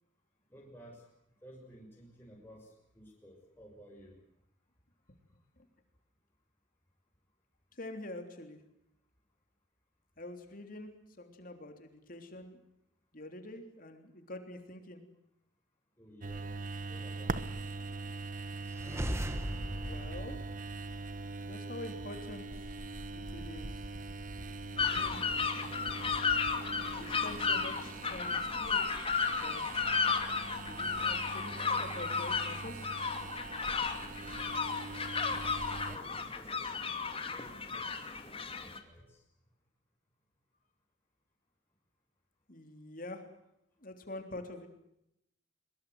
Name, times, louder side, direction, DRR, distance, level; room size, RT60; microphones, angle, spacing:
voice 1, 0.5-1.0 1.4-2.7 3.0-4.1 16.0-16.5 16.9-17.3 35.9-36.8 37.1-37.8 38.6-39.0, equal, 10° left, -2 dB, 6.4 m, -54 dB
voice 2, 7.7-8.6 10.2-12.6 13.1-15.0 19.5-20.4 21.4-22.7 23.1-23.7 24.7-25.3 27.0-28.9 29.3-29.6 30.4-32.9 42.5-43.2 43.8-44.7, left 1 dB, 45° left, 6 dB, 3.4 m, -46 dB
sound 1, 16.2-36.0, right 3 dB, 45° right, 1.3 m, -42 dB
sound 2, 18.6-21.4, equal, 15° right, 1.6 m, -39 dB
sound 3, 24.8-38.8, left 5 dB, 30° left, 2.6 m, -34 dB
23.5 x 22.5 x 7.9 m, 0.81 s
head